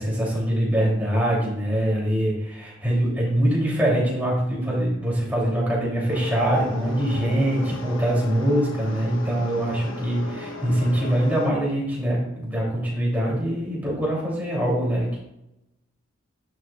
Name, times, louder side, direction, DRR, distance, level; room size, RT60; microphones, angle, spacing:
voice 1, 0.0-15.2, right 1 dB, 10° right, -6 dB, 3.1 m, -23 dB
sound 1, 6.1-11.5, left 2 dB, 70° left, 1.1 m, -36 dB
10.5 x 7.5 x 2.5 m, 0.85 s
head